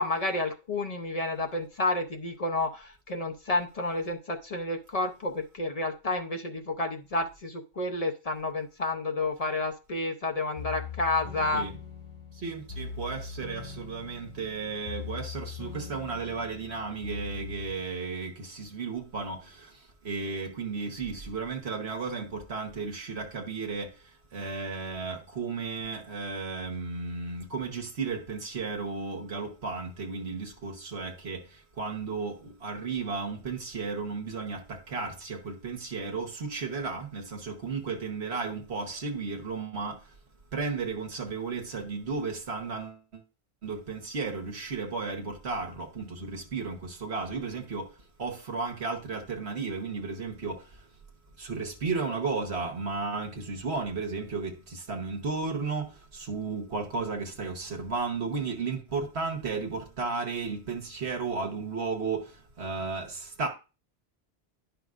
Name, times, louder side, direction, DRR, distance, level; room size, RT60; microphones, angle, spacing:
voice 1, 0.0-11.7, left 2 dB, 40° left, 0.7 m, -30 dB
sound 1, 10.6-17.8, left 6 dB, 60° left, 2.1 m, -41 dB
voice 2, 12.4-19.7 20.0-23.9 24.3-31.4 31.8-40.0 40.5-43.2 43.6-47.9 48.2-50.6 51.4-55.8 56.1-62.3 62.6-63.5, right 4 dB, 80° right, 1.4 m, -34 dB
10.5 x 5.6 x 2.5 m
omnidirectional pair, 1.1 m